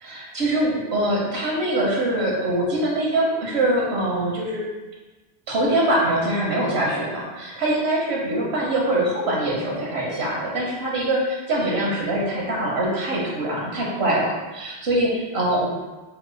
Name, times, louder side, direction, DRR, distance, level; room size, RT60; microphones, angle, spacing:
voice 1, 0.0-4.6 5.5-15.7, right 1 dB, 80° right, -3 dB, 1.3 m, -23 dB
5.7 x 3.3 x 2.2 m, 1.2 s
omnidirectional pair, 1.1 m